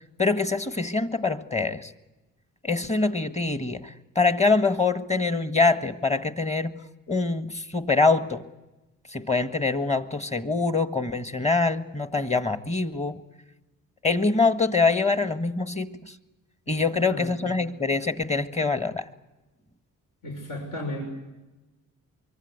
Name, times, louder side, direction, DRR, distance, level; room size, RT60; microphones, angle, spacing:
voice 1, 0.2-1.9 2.6-6.8 7.1-8.4 9.1-13.2 14.0-16.1 16.7-19.1, left 3 dB, 20° left, 8 dB, 1.6 m, -24 dB
voice 2, 16.7-17.6 20.2-21.1, left 1 dB, 70° left, 2 dB, 5.9 m, -35 dB
24.5 x 24.0 x 8.2 m, 1.1 s
cardioid pair, 100°, 33 cm